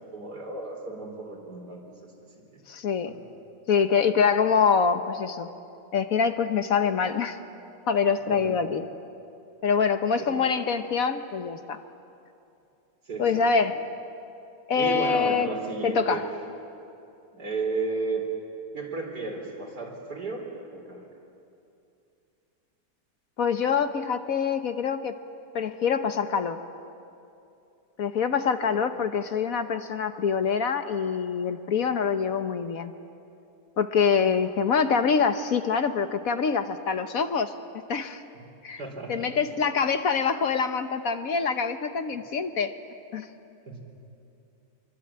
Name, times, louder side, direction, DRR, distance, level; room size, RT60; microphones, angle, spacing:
voice 1, 0.1-2.1 3.0-3.1 8.3-8.5 10.2-10.4 13.1-13.4 14.7-16.2 17.3-18.2 18.7-21.1 28.7-29.0 34.1-34.2 38.3-38.5 38.8-39.3 43.7-43.8, right 3 dB, 70° right, 0 dB, 4.7 m, -33 dB
voice 2, 2.7-3.1 3.7-5.5 5.9-7.4 7.9-8.8 9.6-11.8 13.2-13.8 14.7-15.5 15.8-16.2 23.4-25.1 25.5-26.6 28.0-32.9 33.8-37.5 37.9-38.2 38.6-38.8 39.1-42.8 43.1-43.3, left 6 dB, 60° left, 8 dB, 1.3 m, -25 dB
25.0 x 23.5 x 8.7 m, 2.7 s
omnidirectional pair, 1.8 m